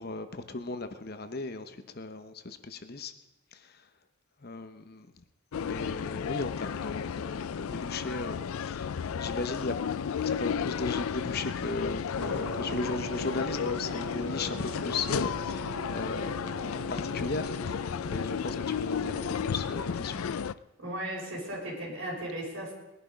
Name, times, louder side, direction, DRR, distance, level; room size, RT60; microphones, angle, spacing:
voice 1, 0.0-3.1 3.5-3.8 4.4-5.1 5.6-9.8 10.2-20.4, left 3 dB, 45° left, 9 dB, 0.9 m, -36 dB
sound 1, 5.5-20.5, left 7 dB, 75° left, 0.4 m, -33 dB
sound 2, 12.2-20.6, right 3 dB, 85° right, 1.9 m, -43 dB
voice 2, 20.8-22.7, right 1 dB, 65° right, -2 dB, 5.3 m, -36 dB
20.0 x 11.0 x 5.1 m, 1.1 s
head